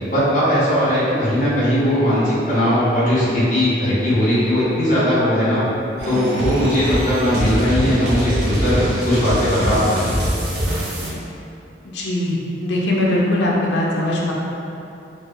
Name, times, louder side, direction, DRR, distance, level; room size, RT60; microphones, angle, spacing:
voice 1, 0.1-5.6 6.0-8.8 9.0-10.2, equal, 45° left, -12 dB, 1.1 m, -18 dB
sound 1, 6.0-11.1, equal, 85° right, 0.8 m, -23 dB
voice 2, 11.8-14.3, left 1 dB, 75° left, -3 dB, 0.6 m, -21 dB
3.3 x 2.2 x 3.3 m, 2.8 s
head